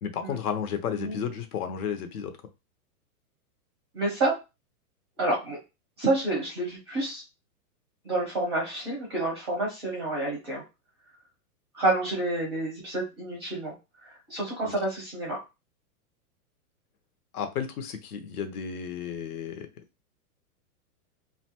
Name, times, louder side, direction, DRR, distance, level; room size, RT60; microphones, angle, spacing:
voice 1, 0.0-2.3 14.6-14.7 17.3-19.7, left 7 dB, 75° left, 0.8 m, -32 dB
voice 2, 3.9-4.3 5.2-5.6 6.0-7.2 8.0-10.6 11.7-13.7 14.0-15.4, right 2 dB, 20° right, 0.5 m, -28 dB
2.6 x 2.1 x 2.8 m
supercardioid pair, 170°, 46 cm